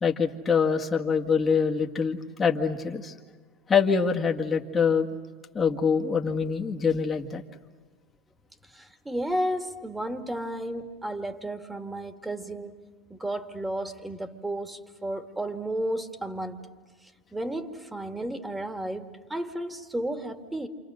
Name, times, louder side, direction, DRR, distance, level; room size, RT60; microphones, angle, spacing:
voice 1, 0.0-3.1 3.7-5.1 5.5-7.4, left 6 dB, 25° left, 1 dB, 1.8 m, -24 dB
voice 2, 8.7-12.8 13.1-16.7 17.3-20.7, right 1 dB, 10° right, 6 dB, 2.1 m, -33 dB
28.5 x 27.0 x 6.5 m, 1.4 s
hypercardioid pair, 100°, 0 cm